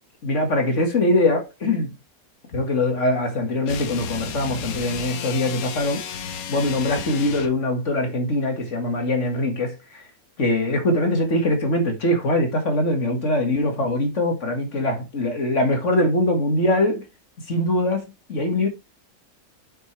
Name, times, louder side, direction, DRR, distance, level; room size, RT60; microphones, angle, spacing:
voice 1, 0.2-1.9 2.5-6.0 6.5-10.1 10.4-17.1 17.5-18.7, left 1 dB, 55° left, 1.9 m, -22 dB
sound 1, 3.6-7.6, left 6 dB, 75° left, 1.4 m, -33 dB
8.0 x 6.7 x 3.1 m
omnidirectional pair, 1.5 m